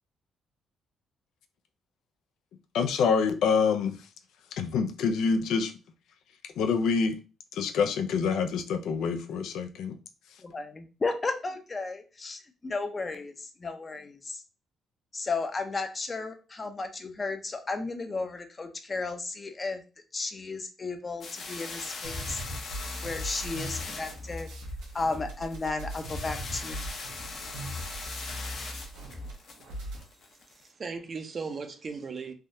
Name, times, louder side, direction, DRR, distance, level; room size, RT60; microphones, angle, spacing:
voice 1, 2.7-4.0 4.6-5.7 6.6-7.2 7.5-9.9, left 5 dB, 80° left, 0.4 m, -26 dB
voice 2, 10.4-14.4 15.1-19.8 20.1-22.4 23.0-24.5 24.9-26.9, left 3 dB, 30° left, 0.5 m, -34 dB
sound 1, 21.2-30.6, left 3 dB, 60° left, 0.8 m, -41 dB
sound 2, 22.0-29.3 29.6-30.0, equal, 90° right, 0.8 m, -39 dB
voice 3, 30.5-32.3, right 5 dB, 40° right, 0.5 m, -37 dB
3.4 x 2.2 x 2.6 m
cardioid pair, 90°, 0 cm